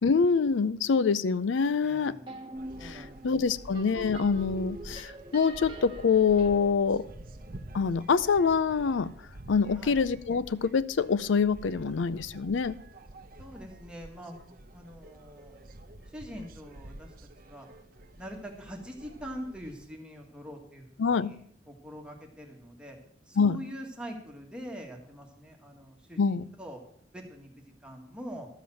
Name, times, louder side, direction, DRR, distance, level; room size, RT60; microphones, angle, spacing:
voice 1, 0.0-2.2 2.8-7.0 7.7-9.1 9.5-12.7 21.0-21.3 23.4-23.6 26.2-26.5, left 5 dB, 85° left, 17 dB, 0.5 m, -25 dB
sound 1, 0.8-1.2 1.5-1.7 2.3-8.0, right 1 dB, 30° right, 1.4 m, -45 dB
voice 2, 1.8-2.3 2.8-3.2 9.7-9.9 13.4-15.6 16.1-17.7 18.2-21.4 21.7-23.0 23.3-26.8 27.1-28.5, equal, 5° right, 0 dB, 1.7 m, -44 dB
sound 2, 2.5-19.9, right 1 dB, 50° right, 0.8 m, -48 dB
12.5 x 7.0 x 7.6 m, 0.66 s
head